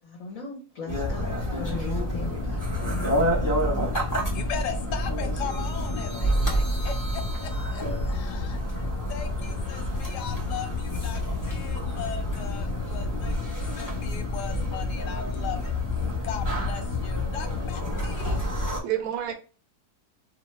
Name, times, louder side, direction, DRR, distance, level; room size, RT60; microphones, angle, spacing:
voice 1, 0.0-2.7, left 4 dB, 60° left, -3 dB, 1.2 m, -39 dB
sound 1, 0.9-18.8, left 1 dB, 20° left, 0.6 m, -28 dB
voice 2, 4.3-15.7 16.2-18.4, left 7 dB, 85° left, 6 dB, 1.2 m, -38 dB
voice 3, 18.4-19.3, right 11 dB, 70° right, 6 dB, 0.9 m, -31 dB
3.0 x 2.1 x 3.1 m, 0.35 s
omnidirectional pair, 1.7 m